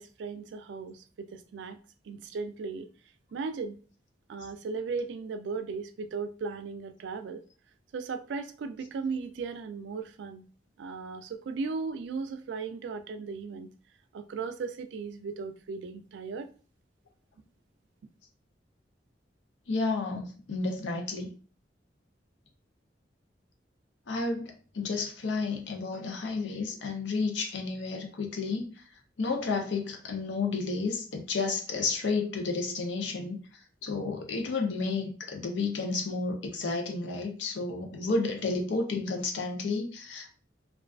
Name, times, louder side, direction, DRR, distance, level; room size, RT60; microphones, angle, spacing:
voice 1, 0.0-1.8 2.1-2.9 3.3-3.8 4.3-7.4 7.9-10.4 10.8-13.7 14.1-16.5, right 4 dB, 80° right, 0.3 m, -36 dB
voice 2, 19.7-21.3 24.1-28.7 29.2-33.4 33.8-40.3, left 3 dB, 90° left, 0.5 m, -31 dB
2.3 x 2.2 x 2.3 m
head